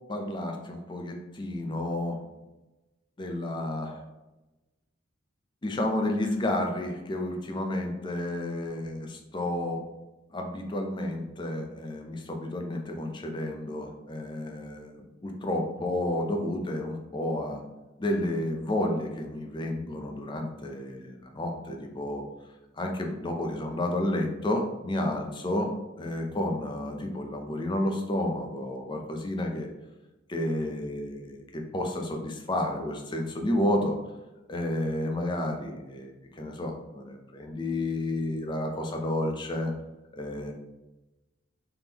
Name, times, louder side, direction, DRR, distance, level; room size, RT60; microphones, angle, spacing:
voice 1, 0.1-2.2 3.2-4.0 5.6-9.8 10.3-17.6 18.0-22.2 22.7-25.7 26.0-29.7 30.3-34.0 34.5-39.7 40.1-40.5, left 1 dB, 25° left, 3 dB, 0.5 m, -31 dB
3.6 x 3.4 x 2.9 m, 1.0 s
head